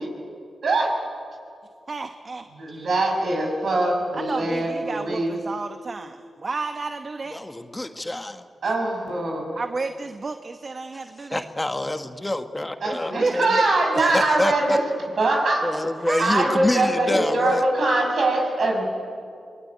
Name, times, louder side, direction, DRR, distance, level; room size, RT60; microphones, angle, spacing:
voice 1, 0.6-1.0 2.6-5.3 8.6-9.5 12.8-14.8 15.2-15.7 16.2-18.9, right 2 dB, 70° right, 1 dB, 6.2 m, -22 dB
voice 2, 1.9-2.9 4.1-7.4 9.5-11.5 12.9-14.3 16.1-16.3, right 3 dB, 45° right, 8 dB, 1.1 m, -31 dB
voice 3, 7.3-8.5 10.9-11.0 11.3-13.6 14.1-14.8 15.6-17.7, left 1 dB, 20° left, 7 dB, 1.4 m, -27 dB
26.0 x 20.0 x 9.6 m, 2.4 s
cardioid pair, 60°, 0 cm